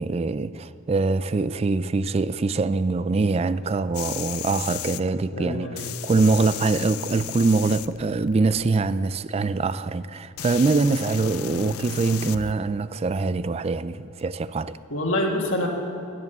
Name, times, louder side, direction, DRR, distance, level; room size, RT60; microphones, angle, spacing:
voice 1, 0.0-14.8, right 3 dB, 25° right, 0.3 m, -24 dB
sound 1, 3.9-5.0 5.8-8.7 9.7-9.8 10.4-12.5 14.2-14.3, left 11 dB, 80° left, 0.5 m, -35 dB
voice 2, 5.3-6.0 14.9-15.7, left 1 dB, 60° left, 1.7 m, -26 dB
14.5 x 10.5 x 8.0 m
head